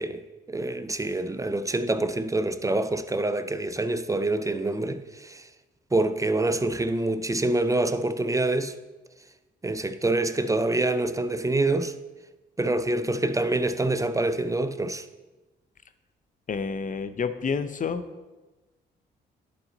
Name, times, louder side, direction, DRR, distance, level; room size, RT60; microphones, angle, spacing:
voice 1, 0.0-5.5 5.9-8.7 9.6-11.9 12.6-15.0, right 2 dB, 15° right, 0.5 m, -26 dB
voice 2, 16.5-18.0, left 5 dB, 40° left, 0.7 m, -29 dB
11.0 x 4.1 x 3.9 m
supercardioid pair, 60°, 21 cm